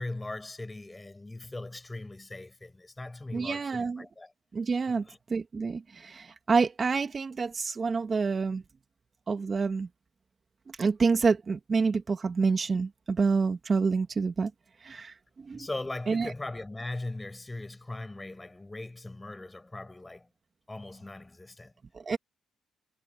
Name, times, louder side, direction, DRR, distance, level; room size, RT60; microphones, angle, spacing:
voice 1, 0.0-4.3 4.9-5.2 15.5-20.3 20.7-21.7, left 2 dB, 15° left, 7.8 m, -39 dB
voice 2, 3.3-4.0 4.5-5.0 5.3-8.6 9.3-9.9 10.8-14.5 14.8-15.7 16.1-16.3 22.1-22.2, right 4 dB, 35° right, 2.0 m, -27 dB
cardioid pair, 90°, 0 cm